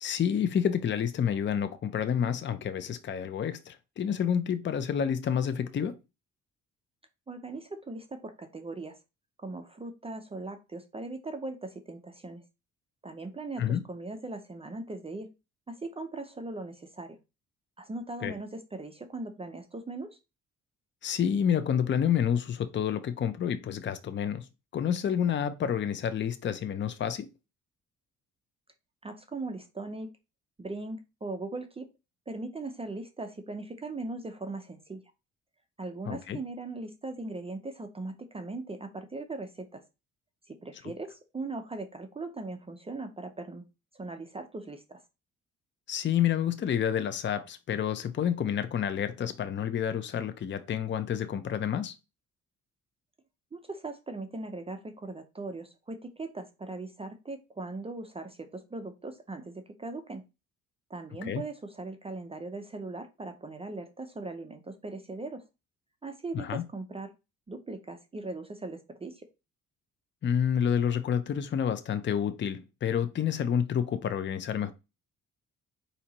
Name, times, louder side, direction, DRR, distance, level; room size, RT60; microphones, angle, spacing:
voice 1, 0.0-5.9 13.6-13.8 18.2-18.3 21.0-24.5 24.7-27.3 36.1-36.4 45.9-51.9 61.2-61.4 66.3-66.6 70.2-74.7, left 8 dB, 40° left, 0.6 m, -29 dB
voice 2, 7.3-9.0 9.4-12.4 13.0-15.3 15.7-17.2 17.8-20.2 29.0-30.1 30.6-31.9 32.3-35.0 35.8-39.8 40.5-43.7 43.9-45.0 53.5-60.2 60.9-65.4 66.0-67.1 67.5-69.3, right 2 dB, 20° right, 0.5 m, -39 dB
4.4 x 2.8 x 4.0 m
cardioid pair, 90°, 30 cm